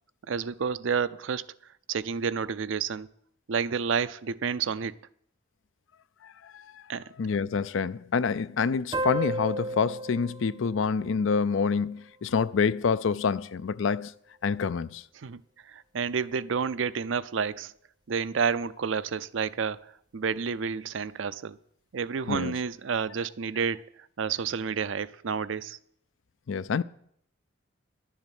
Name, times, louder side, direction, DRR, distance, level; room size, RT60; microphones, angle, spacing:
voice 1, 0.3-1.5 1.9-3.1 3.5-5.0 6.9-7.0 15.2-17.7 18.1-21.6 21.9-23.8 24.2-25.8, right 6 dB, 80° right, 0.5 m, -30 dB
voice 2, 7.2-14.1 14.4-15.0 22.3-22.6 26.5-26.8, left 5 dB, 80° left, 0.4 m, -27 dB
sound 1, 8.9-12.1, right 1 dB, 20° right, 0.4 m, -34 dB
11.5 x 7.2 x 8.2 m
head